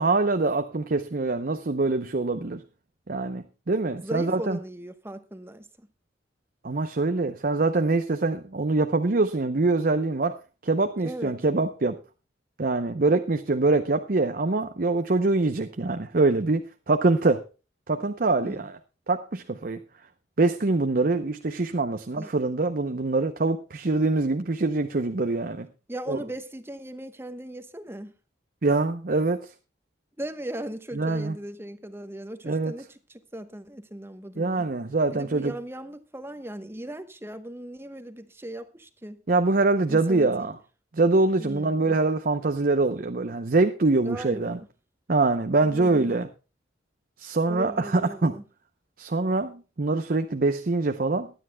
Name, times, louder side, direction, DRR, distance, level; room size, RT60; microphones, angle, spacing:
voice 1, 0.0-2.6 3.1-4.6 6.6-10.4 10.6-12.0 12.6-17.4 17.9-18.8 19.1-19.8 20.4-25.7 26.1-26.2 28.6-29.5 30.9-31.4 32.4-32.7 34.4-35.5 39.3-40.5 40.9-44.6 45.1-46.3 47.2-48.3 49.0-51.3, right 3 dB, 50° right, 0.7 m, -24 dB
voice 2, 4.0-5.9 11.0-11.3 18.4-18.6 22.2-22.3 25.9-28.1 30.2-34.7 35.1-39.2 39.9-40.5 41.4-42.0 44.0-44.6 45.6-46.2 47.5-48.4, right 1 dB, 15° right, 1.0 m, -38 dB
22.5 x 9.8 x 2.2 m
head